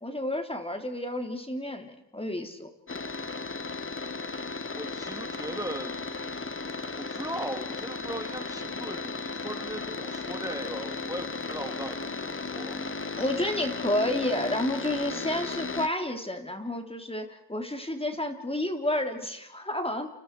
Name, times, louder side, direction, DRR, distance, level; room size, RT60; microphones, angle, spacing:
voice 1, 0.0-2.7 13.2-20.1, left 1 dB, 15° left, 5 dB, 3.2 m, -30 dB
sound 1, 2.9-15.9, left 4 dB, 30° left, 1.5 m, -35 dB
voice 2, 4.7-6.0 6.9-12.8, right 1 dB, 10° right, 4 dB, 2.9 m, -38 dB
30.0 x 29.5 x 4.6 m, 0.88 s
cardioid pair, 65°, 42 cm